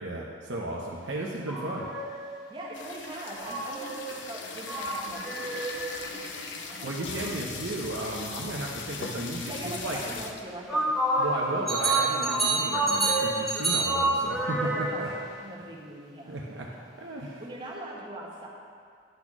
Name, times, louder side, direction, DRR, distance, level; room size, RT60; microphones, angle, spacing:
voice 1, 0.0-1.9 6.8-10.0 11.2-15.1 16.3-16.7 17.0-17.4, right 1 dB, 65° right, -2 dB, 0.7 m, -34 dB
sound 1, 1.5-2.3 3.4-6.1 10.7-15.2, right 2 dB, ahead, 1.0 m, -28 dB
voice 2, 2.5-7.1 8.0-8.2 9.4-10.9 14.4-16.9 17.4-18.5, right 1 dB, 25° right, -3 dB, 1.2 m, -42 dB
sound 2, 2.7-10.6 11.1-11.2 11.4-11.7 12.1-13.4, left 4 dB, 65° left, 0.6 m, -39 dB
10.5 x 4.2 x 6.0 m, 2.2 s
head